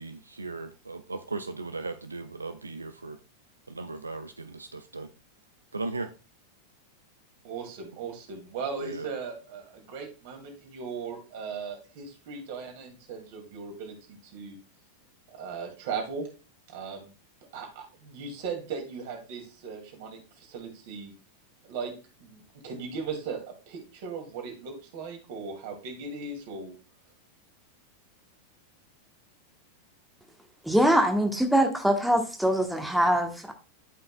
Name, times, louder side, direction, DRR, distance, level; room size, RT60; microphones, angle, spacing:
voice 1, 0.0-3.2 3.7-5.1 5.7-6.1 8.8-9.1, right 3 dB, 80° right, 0.4 m, -37 dB
voice 2, 7.4-14.0 14.3-14.6 15.3-16.3 16.7-17.1 17.5-20.2 20.5-21.1 21.6-21.9 22.2-23.4 23.7-26.7, right 5 dB, 50° right, 2.3 m, -37 dB
voice 3, 30.6-33.5, right 1 dB, ahead, 1.1 m, -23 dB
12.5 x 5.5 x 2.2 m
figure-of-eight pair, 90°, 0 cm